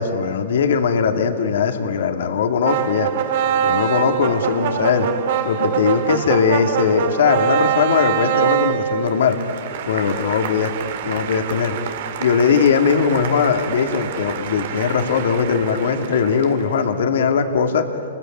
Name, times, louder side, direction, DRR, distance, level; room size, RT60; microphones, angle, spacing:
voice 1, 0.0-3.1 3.6-5.1 5.4-9.4 9.9-10.7 11.0-11.7 12.2-17.9, left 6 dB, 70° left, 5 dB, 2.3 m, -19 dB
sound 1, 2.6-16.8, right 9 dB, 60° right, 2.0 m, -25 dB
28.0 x 22.0 x 9.3 m, 2.7 s
hypercardioid pair, 130°, 0 cm